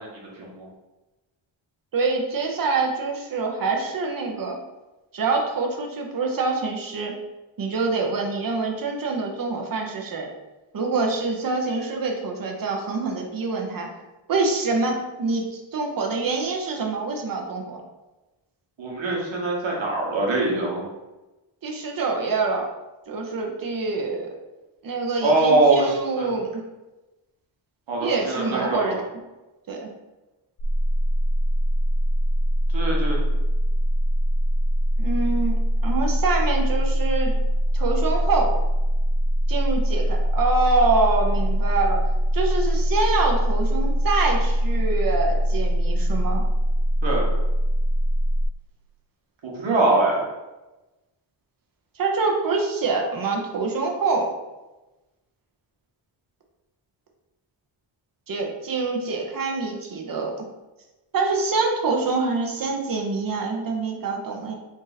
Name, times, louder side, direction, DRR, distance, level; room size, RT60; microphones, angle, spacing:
voice 1, 0.0-0.7 18.8-20.9 25.2-26.3 27.9-29.0 32.7-33.2 47.0-47.3 49.4-50.2, right 2 dB, 70° right, -2 dB, 1.3 m, -23 dB
voice 2, 1.9-4.6 5.1-7.1 7.6-10.3 10.7-13.9 14.3-17.8 21.6-22.7 23.1-24.3 24.8-26.6 28.0-29.0 29.7-29.9 35.0-37.3 37.7-38.5 39.5-42.0 42.3-46.4 52.0-54.3 58.3-60.3 61.1-64.5, right 3 dB, 45° right, 1 dB, 0.8 m, -25 dB
sound 1, 30.6-48.5, equal, 90° left, 0.9 m, -22 dB
3.7 x 2.7 x 4.0 m, 1.1 s
wide cardioid pair, 120°, 47 cm